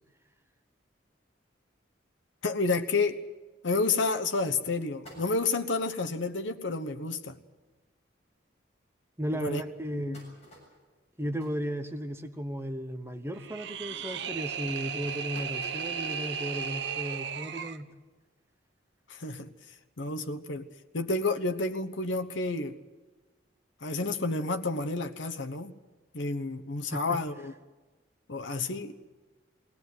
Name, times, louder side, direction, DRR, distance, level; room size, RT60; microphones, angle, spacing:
voice 1, 2.4-3.2 3.6-7.4 9.3-9.6 9.9-10.2 19.1-19.5 20.0-20.7 20.9-22.8 23.8-25.7 26.1-27.5 28.3-29.0, left 3 dB, 75° left, 5 dB, 1.1 m, -30 dB
sound 1, 5.0-5.9 6.4-6.5 6.8-6.9 7.2-7.4 8.1-8.2 8.7-8.8 9.6-12.4 12.8-13.1 13.5-13.9 14.5-16.5 16.9-17.0 18.2-18.3, left 1 dB, 35° left, 7.6 m, -54 dB
voice 2, 9.2-10.3 11.2-17.9 26.9-27.2, equal, 15° right, 7 dB, 1.0 m, -35 dB
sound 2, 13.3-17.8, right 7 dB, 65° right, 0.9 m, -35 dB
21.5 x 17.5 x 9.5 m, 1.3 s
head